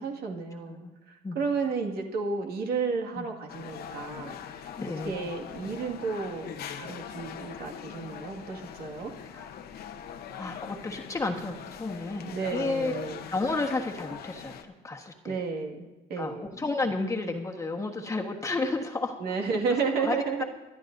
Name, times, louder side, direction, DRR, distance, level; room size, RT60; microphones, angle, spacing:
voice 1, 0.0-0.8 1.1-4.7 5.1-9.1 12.2-13.3 15.3-16.5 19.2-20.4, right 4 dB, 65° right, 1 dB, 2.0 m, -32 dB
voice 2, 0.6-0.9 1.2-1.4 3.1-3.3 4.8-5.1 5.6-5.8 9.3-9.5 10.3-12.9 13.3-15.4 16.2-19.2 20.0-20.4, left 3 dB, 20° left, 2 dB, 1.3 m, -32 dB
sound 1, 3.5-14.6, left 8 dB, 65° left, 0.9 m, -42 dB
24.0 x 11.5 x 2.7 m, 1.1 s
cardioid pair, 110°, 17 cm